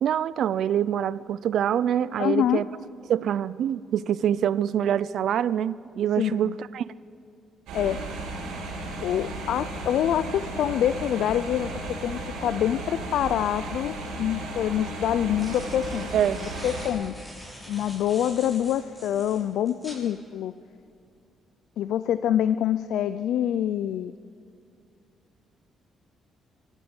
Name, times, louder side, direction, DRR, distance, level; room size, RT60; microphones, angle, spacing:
voice 1, 0.0-2.6 3.1-6.8 16.1-16.4, right 9 dB, 70° right, 19 dB, 0.6 m, -25 dB
voice 2, 2.2-2.6 6.2-6.5 7.7-8.0 9.0-16.1 16.6-17.1 17.7-20.5 21.8-24.1, left 10 dB, 80° left, 14 dB, 0.5 m, -26 dB
sound 1, 7.7-16.9, right 2 dB, 90° right, 5.2 m, -35 dB
sound 2, 15.3-20.0, equal, 10° left, 7.1 m, -44 dB
25.0 x 14.5 x 7.2 m, 2.5 s
cardioid pair, 90°, 0 cm